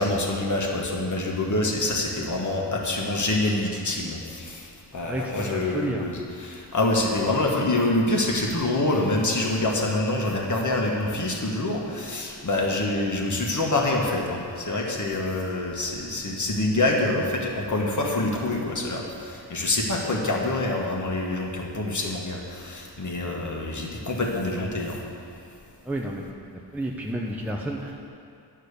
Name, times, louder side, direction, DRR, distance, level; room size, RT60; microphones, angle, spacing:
voice 1, 0.0-4.7 4.9-25.0, left 2 dB, 40° left, -1 dB, 1.8 m, -26 dB
voice 2, 5.1-6.1 25.9-26.2 26.7-28.1, right 1 dB, 5° right, -1 dB, 0.8 m, -31 dB
9.9 x 6.5 x 6.8 m, 2.5 s
cardioid pair, 70°, 44 cm